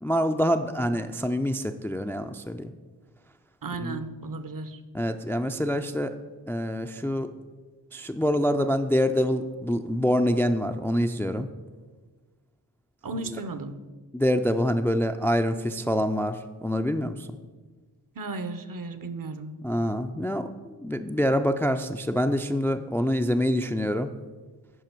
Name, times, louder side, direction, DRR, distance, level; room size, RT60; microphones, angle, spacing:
voice 1, 0.0-2.7 3.8-4.0 4.9-6.1 6.5-7.3 7.9-11.5 13.3-13.4 14.1-17.3 19.6-24.1, equal, 5° left, 7 dB, 0.3 m, -26 dB
voice 2, 3.6-4.8 13.0-13.8 18.2-19.6, right 3 dB, 50° right, 11 dB, 0.8 m, -35 dB
11.0 x 4.9 x 4.5 m, 1.4 s
cardioid pair, 55°, 41 cm